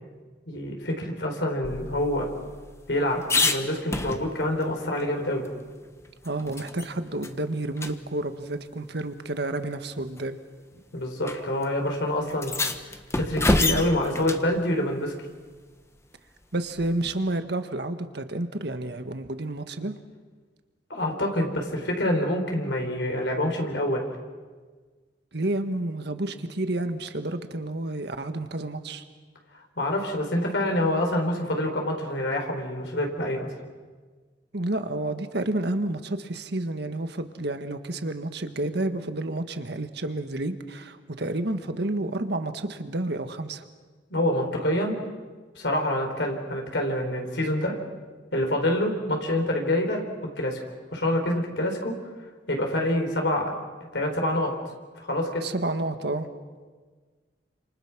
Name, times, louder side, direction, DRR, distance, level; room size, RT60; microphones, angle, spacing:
voice 1, 0.5-2.3 2.9-5.5 10.9-12.6 13.1-15.1 20.9-24.0 29.8-33.5 44.1-45.0 45.5-47.8 48.3-50.0 50.4-50.6 50.9-51.9 52.5-53.5 53.9-54.5 55.0-55.5, left 1 dB, 70° left, 2 dB, 4.5 m, -26 dB
sound 1, 1.6-4.6 5.0-5.1 5.4-6.9 7.2-7.4 7.8-7.9 9.0-9.1 10.0-10.2 11.2-11.4 11.6-11.7 12.3-14.5 16.8-17.2, left 2 dB, 15° left, 1.2 m, -28 dB
voice 2, 6.2-10.4 16.5-19.9 25.3-29.0 34.5-43.6 55.4-56.3, right 2 dB, 65° right, 8 dB, 1.6 m, -30 dB
28.5 x 27.0 x 6.1 m, 1.5 s
head